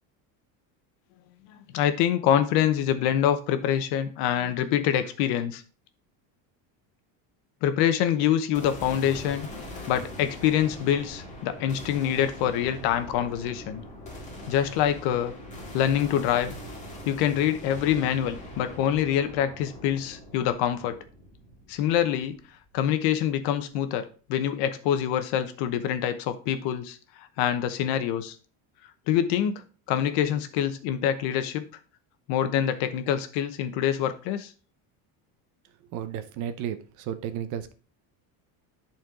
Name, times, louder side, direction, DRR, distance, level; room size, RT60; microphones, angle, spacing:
voice 1, 1.5-5.6 7.6-9.5 9.9-13.8 14.5-15.3 15.7-16.5 17.0-20.9 21.7-22.4 22.7-28.4 29.1-29.6 29.9-31.6 32.3-34.5, left 10 dB, 65° left, 10 dB, 1.0 m, -25 dB
sound 1, 8.5-22.8, equal, 15° left, 2.1 m, -42 dB
voice 2, 35.9-37.7, right 10 dB, 45° right, 11 dB, 0.7 m, -33 dB
10.5 x 4.4 x 3.7 m, 0.38 s
cardioid pair, 175°, 42 cm